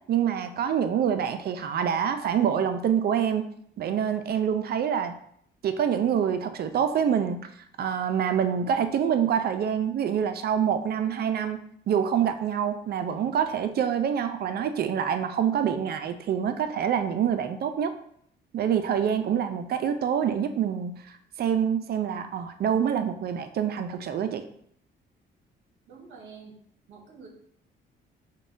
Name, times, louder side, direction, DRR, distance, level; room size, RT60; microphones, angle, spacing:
voice 1, 0.1-3.4 3.8-5.1 5.6-7.5 7.8-11.6 11.9-17.9 18.5-24.4, right 8 dB, 50° right, 8 dB, 0.4 m, -26 dB
voice 2, 25.9-26.6 26.9-27.3, right 5 dB, 70° right, -1 dB, 0.8 m, -47 dB
5.2 x 2.2 x 2.6 m, 0.67 s
cardioid pair, 90°, 20 cm